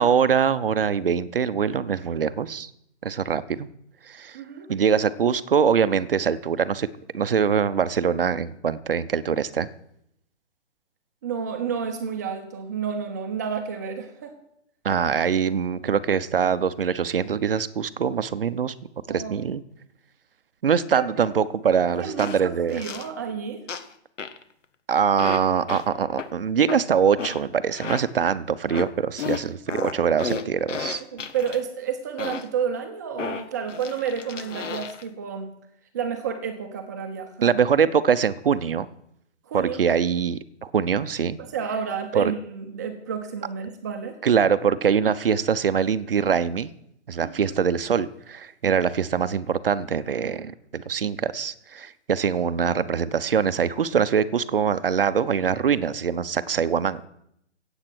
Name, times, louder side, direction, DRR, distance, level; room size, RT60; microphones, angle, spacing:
voice 1, 0.0-2.7 3.0-3.7 4.1-4.4 4.7-6.9 7.1-9.7 14.8-18.7 19.1-19.6 20.6-22.8 24.9-31.0 37.4-38.9 39.5-41.4 42.1-42.3 44.2-46.7 47.1-57.0, right 7 dB, 50° right, 14 dB, 0.7 m, -23 dB
voice 2, 4.3-4.7 11.2-14.4 19.1-19.5 20.9-21.1 21.9-23.7 31.1-35.5 35.9-37.6 39.5-39.9 41.4-44.2 47.2-47.6, right 7 dB, 15° right, 6 dB, 0.9 m, -30 dB
sound 1, 22.2-22.4 22.7-23.1 23.7-23.9 24.2-24.4 25.2-25.4 25.7-25.8 26.2-26.3 26.7-26.8 27.2-27.4 27.7-28.0 28.7-28.9 29.2-31.6 32.2-32.5 33.2-35.0, left 6 dB, 80° left, 1.4 m, -33 dB
16.5 x 8.1 x 6.2 m, 0.75 s
hypercardioid pair, 170°, 36 cm